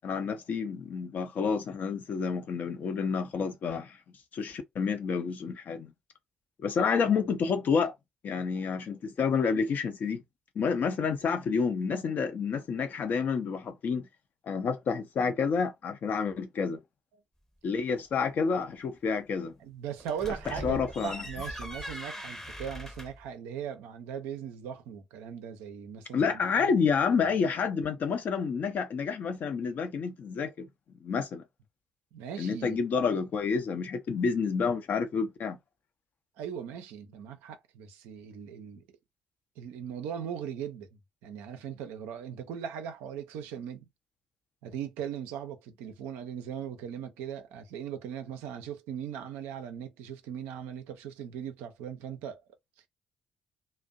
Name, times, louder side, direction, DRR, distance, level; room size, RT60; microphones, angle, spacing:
voice 1, 0.0-4.0 4.3-5.9 6.6-7.9 8.2-10.2 10.6-14.1 14.4-16.8 17.6-19.5 20.5-21.2 26.1-30.7 31.0-31.4 32.4-35.6, left 5 dB, 50° left, 0.6 m, -29 dB
voice 2, 19.6-27.2 32.1-32.8 36.4-38.9 39.6-40.9 41.2-43.9 44.6-52.4, right 8 dB, 65° right, 0.5 m, -39 dB
sound 1, 20.0-23.3, equal, 10° left, 0.8 m, -40 dB
2.5 x 2.0 x 2.5 m
figure-of-eight pair, 45°, 4 cm